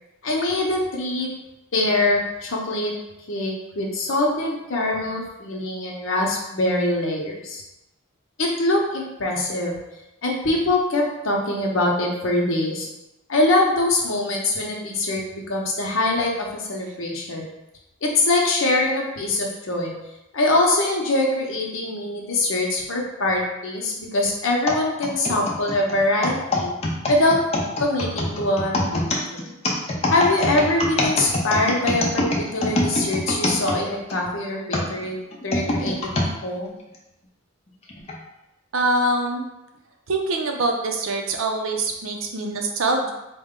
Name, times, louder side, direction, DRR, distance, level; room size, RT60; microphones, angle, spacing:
voice 1, 0.2-1.3 1.7-2.9 3.3-7.6 8.4-9.7 10.2-12.9 13.3-17.5 18.0-19.9 20.3-26.7 27.1-27.4 27.8-29.0 29.3-29.5 30.1-32.3 32.5-35.2 35.4-36.0 36.3-36.7, left 2 dB, 65° left, -1 dB, 0.8 m, -23 dB
sound 1, 24.7-34.2 34.7-36.3 36.9-37.0 37.9-38.2, left 1 dB, 30° left, 0.5 m, -24 dB
voice 2, 38.7-39.5 40.1-43.1, right 2 dB, 70° right, 2 dB, 0.6 m, -24 dB
4.2 x 2.2 x 3.6 m, 0.95 s
head